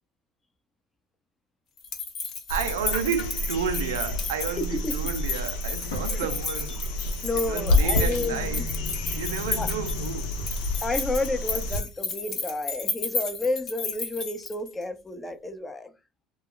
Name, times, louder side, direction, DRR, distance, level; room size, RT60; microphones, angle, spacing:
sound 1, 1.8-14.8, left 4 dB, 55° left, 1.1 m, -33 dB
sound 2, 2.5-11.8 13.9-14.0, left 2 dB, 80° left, 0.7 m, -29 dB
voice 1, 2.5-6.9 7.4-8.7 9.1-10.4, right 8 dB, 80° right, 0.4 m, -31 dB
voice 2, 4.6-4.9 6.1-6.3 7.2-8.7 9.6-9.7 10.8-15.9, left 2 dB, 20° left, 0.6 m, -31 dB
2.2 x 2.2 x 3.7 m
hypercardioid pair, 70°, 0 cm